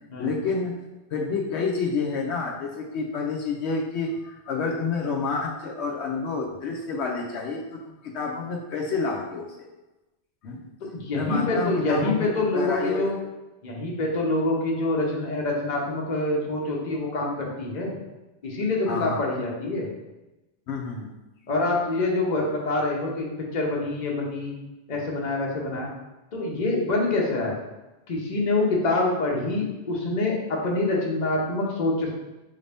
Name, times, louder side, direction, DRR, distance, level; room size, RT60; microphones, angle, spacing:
voice 1, 0.2-0.8 1.1-9.7 10.4-10.7 11.1-13.1 18.9-19.2 20.7-21.1, left 4 dB, 75° left, -1 dB, 0.9 m, -29 dB
voice 2, 10.9-13.1 13.6-17.9 18.4-19.9 21.5-24.5 24.9-25.9 26.3-27.6 28.1-32.1, left 2 dB, 45° left, -2 dB, 0.9 m, -26 dB
5.7 x 2.7 x 3.4 m, 1.0 s
omnidirectional pair, 1.2 m